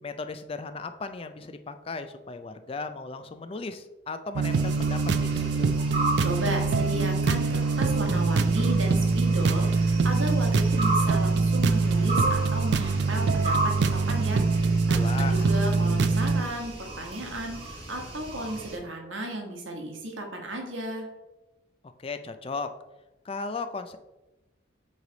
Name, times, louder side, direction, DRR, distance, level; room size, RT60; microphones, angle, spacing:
voice 1, 0.0-5.7 14.9-15.4 22.0-22.7 23.2-24.0, left 4 dB, 30° left, 9 dB, 0.3 m, -36 dB
sound 1, 4.3-16.4, right 4 dB, 60° right, 0.3 m, -24 dB
sound 2, 4.5-18.8, right 2 dB, 30° right, 1.4 m, -35 dB
voice 2, 6.2-21.1, right 1 dB, 80° right, 2 dB, 1.3 m, -34 dB
8.1 x 3.3 x 3.9 m, 1.0 s
head